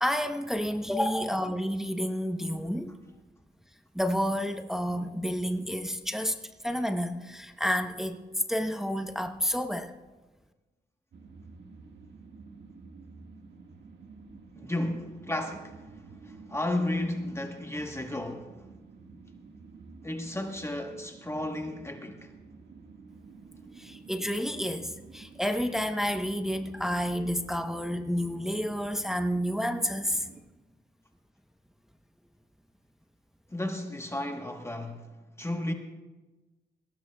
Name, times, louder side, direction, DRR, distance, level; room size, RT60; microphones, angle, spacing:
voice 1, 0.0-3.0 3.9-6.4 6.6-9.9 23.7-30.3, equal, ahead, 0.9 m, -30 dB
sound 1, 11.1-30.4, right 4 dB, 75° right, 1.7 m, -50 dB
voice 2, 14.6-15.8 16.2-18.5 20.0-22.3 33.5-35.7, left 1 dB, 15° left, 1.2 m, -33 dB
21.5 x 17.0 x 2.3 m
cardioid pair, 70°, 19 cm